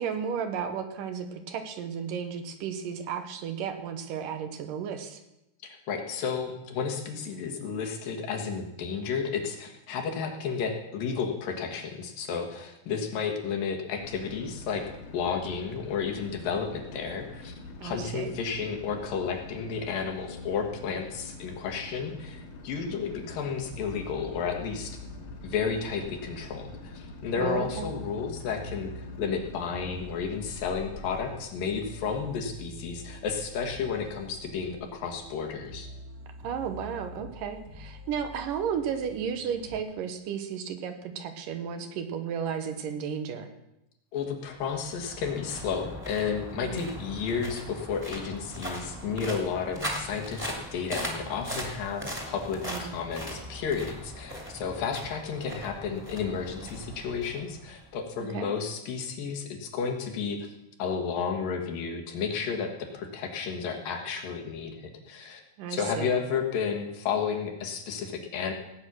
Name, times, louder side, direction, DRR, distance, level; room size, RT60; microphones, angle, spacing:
voice 1, 0.0-5.2 17.8-18.3 27.4-27.9 36.4-43.5 46.6-46.9 52.6-52.9 58.2-58.5 65.6-66.1, right 7 dB, 75° right, 7 dB, 2.6 m, -33 dB
voice 2, 5.6-14.8 15.1-17.5 17.8-25.0 25.4-35.9 44.1-60.5 60.8-65.4 65.7-68.5, left 6 dB, 75° left, 3 dB, 3.3 m, -32 dB
sound 1, 14.0-31.4, left 2 dB, 55° left, 2.5 m, -45 dB
sound 2, 23.1-39.8, equal, 35° right, 2.3 m, -46 dB
sound 3, 44.5-57.9, equal, 5° right, 2.0 m, -39 dB
17.5 x 8.8 x 6.2 m, 0.89 s
omnidirectional pair, 4.1 m